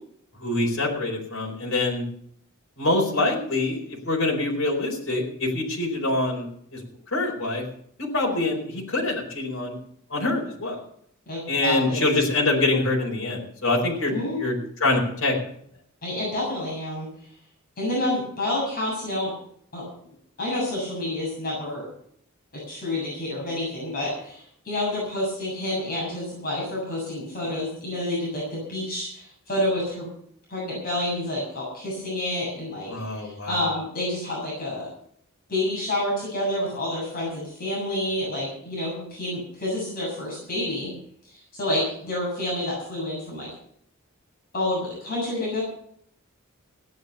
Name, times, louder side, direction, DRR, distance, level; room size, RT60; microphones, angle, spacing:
voice 1, 0.4-2.0 2.8-6.5 6.7-6.8 7.1-7.6 8.0-9.8 10.1-10.8 11.5-14.1 14.4-15.3 32.9-33.6, left 2 dB, 65° left, -1 dB, 4.5 m, -25 dB
voice 2, 11.3-12.0 14.0-14.4 16.0-17.1 17.8-19.3 19.7-19.8 20.4-21.9 22.5-30.1 30.5-34.9 35.5-40.9 41.5-43.5 44.5-45.6, left 1 dB, 45° left, -4 dB, 7.4 m, -29 dB
17.5 x 9.4 x 7.0 m, 0.66 s
head